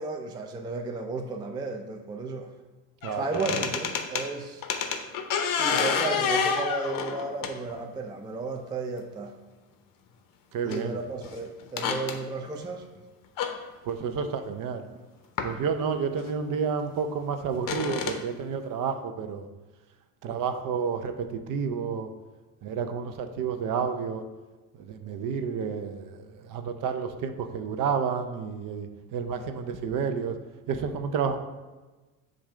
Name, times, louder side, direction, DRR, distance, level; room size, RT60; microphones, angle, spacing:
voice 1, 0.0-2.5 3.1-4.6 5.6-9.3 10.6-12.9 20.3-20.4 22.8-22.9 25.1-25.2 29.4-29.5, right 3 dB, 10° right, 4 dB, 0.3 m, -34 dB
sound 1, 3.0-4.3 4.6-7.8 9.0-9.1 10.7-10.8 11.2-11.3 11.6-12.1 13.4-13.5 15.4-15.5 16.2-16.3 17.6-18.2, left 6 dB, 50° left, 0.8 m, -28 dB
voice 2, 3.0-3.5 10.5-11.0 13.9-14.8 15.4-19.5 20.2-22.1 22.6-24.2 24.8-30.3 30.7-31.4, right 6 dB, 50° right, 7 dB, 0.7 m, -30 dB
7.2 x 2.6 x 4.9 m, 1.2 s
supercardioid pair, 90°, 43 cm